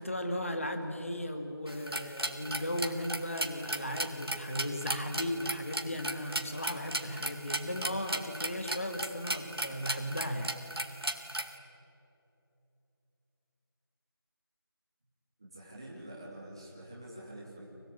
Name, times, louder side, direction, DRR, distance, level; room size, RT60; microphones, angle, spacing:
voice 1, 0.0-10.6, left 1 dB, 35° left, 6 dB, 2.2 m, -36 dB
sound 1, 1.7-11.6, right 1 dB, 80° right, 3.2 m, -36 dB
voice 2, 15.4-17.6, right 1 dB, 10° right, -4 dB, 2.8 m, -47 dB
29.5 x 21.5 x 8.7 m, 2.8 s
figure-of-eight pair, 180°, 13 cm